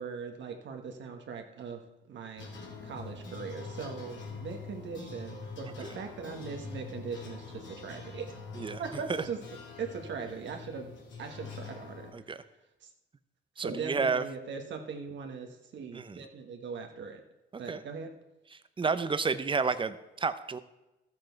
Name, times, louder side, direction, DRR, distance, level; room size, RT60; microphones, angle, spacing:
voice 1, 0.0-1.8 2.1-2.5 2.8-8.4 8.8-9.4 9.8-10.9 11.2-12.4 12.8-12.9 13.6-17.2 17.6-18.1, right 5 dB, 65° right, 4 dB, 1.4 m, -40 dB
sound 1, 2.4-12.1, left 4 dB, 65° left, 2.6 m, -44 dB
voice 2, 13.6-14.2 15.9-16.2 17.5-17.8 18.5-20.6, right 4 dB, 25° right, 13 dB, 0.7 m, -31 dB
13.0 x 7.7 x 4.6 m, 0.99 s
cardioid pair, 90°, 20 cm